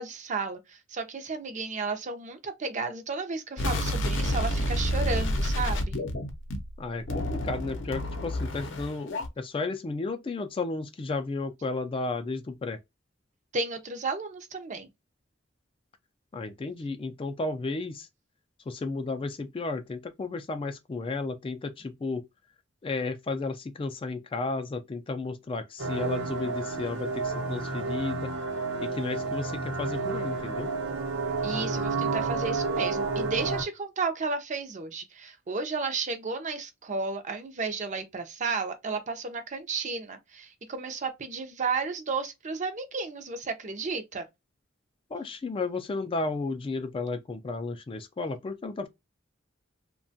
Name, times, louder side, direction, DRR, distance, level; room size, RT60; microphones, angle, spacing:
voice 1, 0.0-6.0 13.5-14.9 31.4-44.3, right 4 dB, 40° right, 0.5 m, -33 dB
sound 1, 3.6-6.7 7.1-9.3, left 1 dB, 70° left, 0.6 m, -29 dB
voice 2, 6.8-12.8 16.3-18.1 18.7-22.2 22.8-28.3 28.8-30.7 45.1-48.9, left 3 dB, 30° left, 0.3 m, -33 dB
sound 2, 25.8-33.6, right 3 dB, 70° right, 0.8 m, -30 dB
2.8 x 2.2 x 2.6 m
head